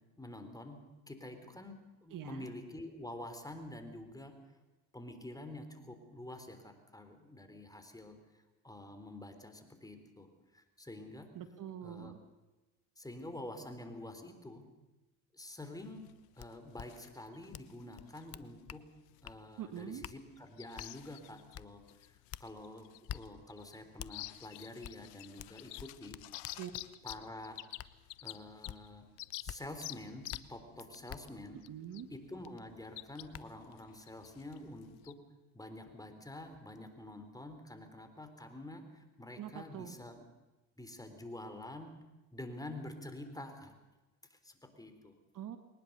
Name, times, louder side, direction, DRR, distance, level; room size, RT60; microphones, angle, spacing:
voice 1, 0.2-4.4 4.9-10.3 10.5-11.3 11.8-12.1 13.0-14.7 15.3-16.1 16.4-18.9 19.2-26.2 27.0-27.6 28.2-29.1 29.4-31.6 32.1-35.2 35.5-40.2 40.8-42.0 42.3-43.7 44.3-45.2, left 1 dB, 10° left, 7 dB, 3.7 m, -48 dB
voice 2, 2.1-2.5 11.3-12.2 19.6-20.0 26.5-26.7 31.7-32.1 39.4-39.9 45.3-45.6, right 10 dB, 50° right, 10 dB, 1.6 m, -44 dB
sound 1, 15.8-35.1, left 19 dB, 75° left, 1.0 m, -51 dB
sound 2, 16.4-16.5 16.8-16.9 17.5-17.7 18.0-18.8 19.2-19.4 20.0-20.2 20.8-20.9 21.5-21.7 22.3-22.5 23.1-23.2 24.0-24.1 24.8-25.0 25.4-27.2 27.8-27.9 28.7-28.8 29.5-29.6 30.3-30.4 31.1-31.2 32.7-32.8 33.3-33.4, left 10 dB, 35° left, 0.8 m, -45 dB
21.5 x 19.5 x 6.8 m, 1.1 s
supercardioid pair, 80°, 41 cm